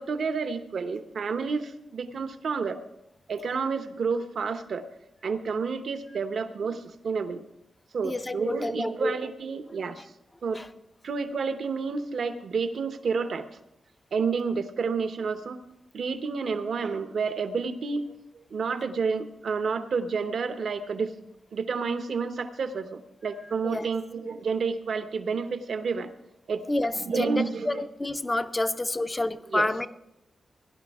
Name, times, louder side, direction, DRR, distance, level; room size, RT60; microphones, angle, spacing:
voice 1, 0.0-2.8 3.3-4.8 5.2-7.4 7.9-10.0 10.4-10.6 11.0-13.5 14.1-15.6 15.9-18.1 18.3-21.1 21.5-26.2 26.5-26.6 26.9-27.9 29.5-29.7, right 5 dB, 65° right, 9 dB, 1.0 m, -30 dB
voice 2, 8.0-9.1 10.5-10.7 23.6-23.9 26.7-29.9, left 2 dB, 20° left, 11 dB, 0.6 m, -29 dB
17.0 x 11.0 x 3.6 m, 0.84 s
wide cardioid pair, 105°, 0 cm